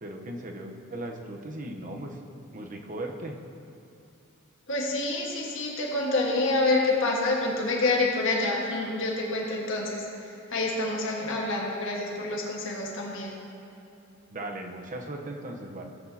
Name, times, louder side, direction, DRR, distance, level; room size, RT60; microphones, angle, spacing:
voice 1, 0.0-2.2 2.5-3.4 14.3-15.8, right 1 dB, 40° right, 2 dB, 0.9 m, -37 dB
voice 2, 4.7-13.3, left 2 dB, 65° left, -2 dB, 1.6 m, -27 dB
16.0 x 8.5 x 2.8 m, 2.8 s
head